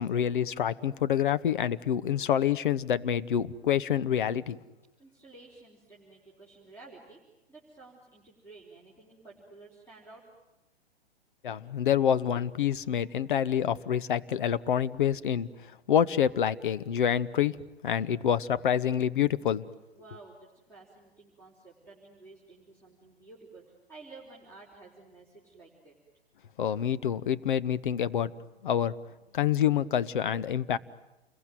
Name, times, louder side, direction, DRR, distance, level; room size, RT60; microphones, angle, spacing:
voice 1, 0.0-4.6 11.4-15.5 15.9-17.6 17.8-19.7 26.6-28.3 28.6-28.9 29.3-30.8, left 9 dB, 50° left, 15 dB, 0.9 m, -27 dB
voice 2, 5.0-7.2 7.5-10.2 19.9-25.9, right 3 dB, 5° left, -3 dB, 4.1 m, -52 dB
29.0 x 22.0 x 9.3 m, 1.0 s
figure-of-eight pair, 115°, 31 cm